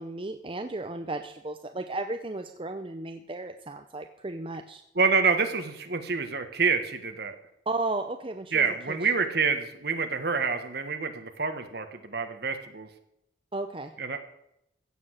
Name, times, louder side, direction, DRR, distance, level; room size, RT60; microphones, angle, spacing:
voice 1, 0.0-4.8 7.7-8.7 13.5-13.9, right 2 dB, 25° right, 6 dB, 0.7 m, -34 dB
voice 2, 4.9-7.3 8.5-12.9 14.0-14.2, right 5 dB, 55° right, 7 dB, 1.6 m, -27 dB
15.5 x 7.9 x 6.5 m, 0.80 s
head